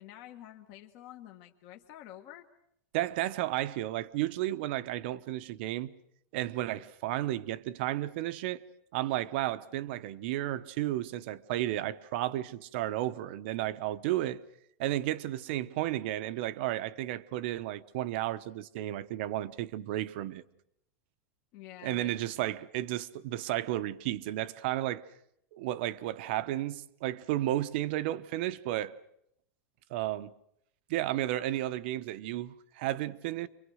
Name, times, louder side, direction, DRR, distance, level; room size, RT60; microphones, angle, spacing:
voice 1, 0.0-2.5 21.5-22.2, left 13 dB, 35° left, 1.3 m, -48 dB
voice 2, 2.9-5.9 6.3-8.6 8.9-14.4 14.8-20.4 21.8-25.0 25.5-28.9 29.9-30.3 30.9-33.5, right 14 dB, 45° right, 0.9 m, -33 dB
28.0 x 24.0 x 6.4 m
supercardioid pair, 175°, 8 cm